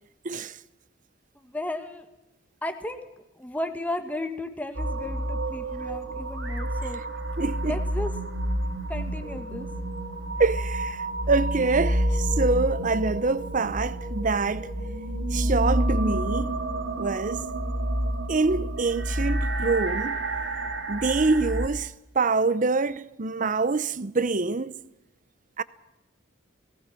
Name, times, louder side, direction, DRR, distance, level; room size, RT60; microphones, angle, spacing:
voice 1, 0.2-0.6 7.4-7.8 10.4-14.7 15.3-16.6 17.0-17.5 18.3-20.2 20.9-24.8 25.6-25.7, right 3 dB, 40° right, 0.7 m, -25 dB
voice 2, 1.4-2.1 2.6-3.0 3.4-7.0 7.7-8.1 8.9-9.7, left 1 dB, 10° left, 1.9 m, -34 dB
sound 1, 4.7-21.7, right 1 dB, 65° right, 3.2 m, -29 dB
28.5 x 19.0 x 6.0 m
head